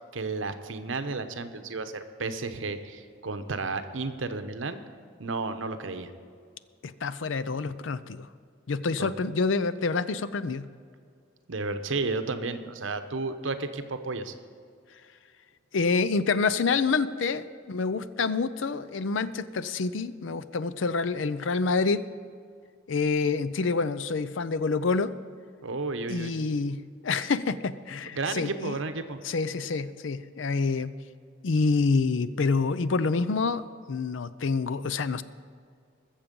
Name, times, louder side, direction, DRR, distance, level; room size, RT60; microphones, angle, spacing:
voice 1, 0.1-4.8 5.2-6.1 9.0-9.1 11.5-14.3 25.6-26.3 28.1-29.2, right 3 dB, 75° right, 9 dB, 0.9 m, -32 dB
voice 2, 6.8-8.3 8.7-10.7 15.7-22.1 22.9-25.2 26.1-28.8 29.2-31.0 31.4-35.2, left 4 dB, 75° left, 15 dB, 0.5 m, -27 dB
21.0 x 7.3 x 5.3 m, 2.2 s
head